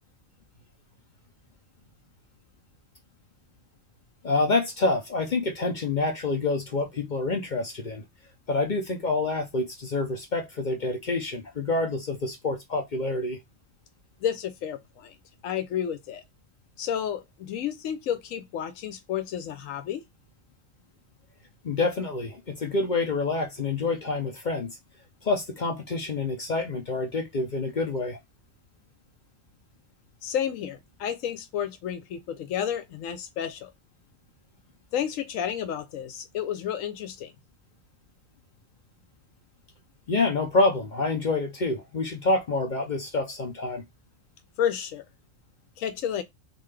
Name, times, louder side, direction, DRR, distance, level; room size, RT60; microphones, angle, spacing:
voice 1, 4.2-8.0 8.5-13.4 21.6-24.8 25.2-28.2 40.1-43.8, left 3 dB, 45° left, 0.7 m, -27 dB
voice 2, 14.2-15.2 15.4-16.2 16.8-20.0 30.2-33.7 34.9-37.3 44.6-45.0 45.8-46.2, left 9 dB, 80° left, 1.0 m, -31 dB
3.8 x 2.5 x 3.2 m
omnidirectional pair, 1.3 m